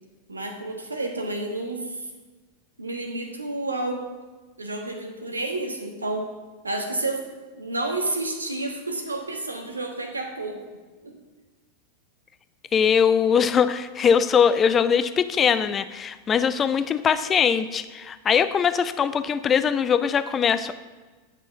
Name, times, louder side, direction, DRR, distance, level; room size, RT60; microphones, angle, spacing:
voice 1, 0.3-2.1 2.8-4.1 4.6-6.3 6.6-7.3 7.5-10.6 11.0-11.2, right 2 dB, 80° right, 4 dB, 1.3 m, -30 dB
voice 2, 12.7-20.8, left 7 dB, 25° left, 13 dB, 0.5 m, -21 dB
10.0 x 6.3 x 5.8 m, 1.3 s
figure-of-eight pair, 90°, 0 cm